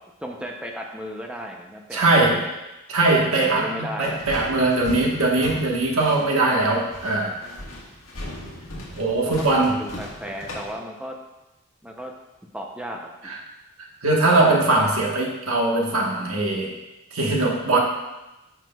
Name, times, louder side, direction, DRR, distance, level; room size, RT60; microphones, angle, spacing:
voice 1, 0.2-2.5 3.4-4.2 9.3-11.1 11.8-12.1 12.5-13.3, equal, 5° right, 1 dB, 0.6 m, -34 dB
voice 2, 1.9-2.4 2.9-7.3 8.9-9.7 13.2-13.4 14.0-16.7 17.1-17.8, right 2 dB, 90° right, -1 dB, 1.3 m, -21 dB
sound 1, 4.0-10.7, left 1 dB, 80° left, 1.6 m, -38 dB
9.3 x 6.0 x 2.3 m, 1.0 s
head